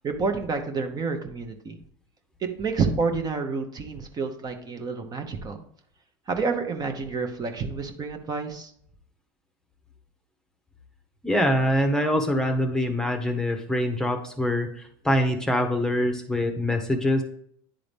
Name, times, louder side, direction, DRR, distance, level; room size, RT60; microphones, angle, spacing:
voice 1, 0.0-1.8 2.4-5.6 6.3-8.7, right 4 dB, 30° right, 5 dB, 1.0 m, -29 dB
voice 2, 11.2-17.2, equal, 5° left, 4 dB, 0.9 m, -24 dB
9.9 x 3.8 x 3.4 m, 0.65 s
supercardioid pair, 100°, 13 cm